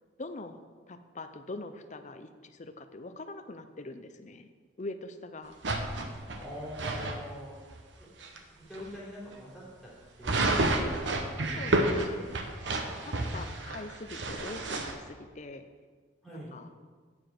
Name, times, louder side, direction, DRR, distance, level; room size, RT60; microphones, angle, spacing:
voice 1, 0.2-0.6 0.9-4.5 4.8-5.6 11.6-12.3 12.9-15.7 16.3-16.7, left 2 dB, 40° left, 8 dB, 0.6 m, -43 dB
sound 1, 5.6-7.2 7.7-7.8 8.2-8.4 8.7-8.9 10.2-14.9, right 2 dB, 75° right, 1.0 m, -30 dB
voice 2, 6.3-7.6 8.0-8.1 8.5-9.9 10.2-10.7 12.1-12.2 13.0-13.6 16.2-16.6, equal, ahead, -8 dB, 3.6 m, -44 dB
9.7 x 6.9 x 6.0 m, 1.5 s
head